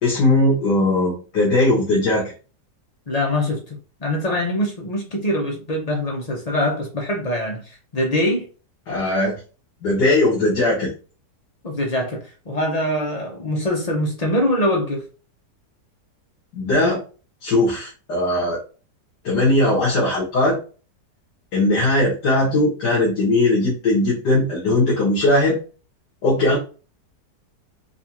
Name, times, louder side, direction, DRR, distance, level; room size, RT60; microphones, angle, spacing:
voice 1, 0.0-2.3 8.9-9.4 9.8-10.9 16.5-17.0 17.4-18.6 19.2-20.6 21.5-25.6 26.2-26.6, left 2 dB, 75° left, 2.0 m, -19 dB
voice 2, 3.1-8.5 11.6-15.0, left 1 dB, 45° left, 0.4 m, -23 dB
4.6 x 2.3 x 2.9 m
omnidirectional pair, 1.8 m